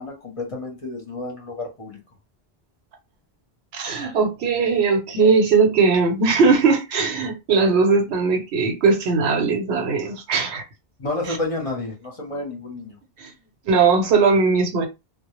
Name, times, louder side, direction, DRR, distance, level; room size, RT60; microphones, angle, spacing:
voice 1, 0.0-2.0 11.0-13.0, left 2 dB, 40° left, 0.6 m, -30 dB
voice 2, 3.7-10.6 13.2-13.3 13.7-14.9, right 4 dB, 90° right, 0.9 m, -19 dB
2.1 x 2.0 x 2.9 m
omnidirectional pair, 1.0 m